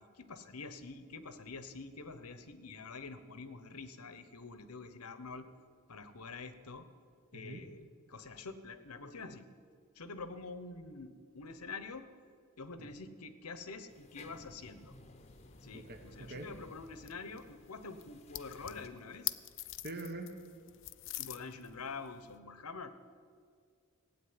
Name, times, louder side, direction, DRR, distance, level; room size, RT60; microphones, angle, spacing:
voice 1, 0.0-5.5 5.9-6.9 7.3-9.5 9.9-12.1 12.6-14.9 15.6-19.3 21.2-22.9, left 4 dB, 85° left, 11 dB, 1.1 m, -46 dB
sound 1, 13.9-18.9, left 2 dB, 30° left, 0.9 m, -57 dB
sound 2, 15.2-22.4, left 16 dB, 60° left, 0.5 m, -46 dB
voice 2, 15.7-16.5 19.8-20.3, right 2 dB, 45° right, 4 dB, 1.3 m, -44 dB
16.5 x 8.6 x 9.7 m, 2.1 s
head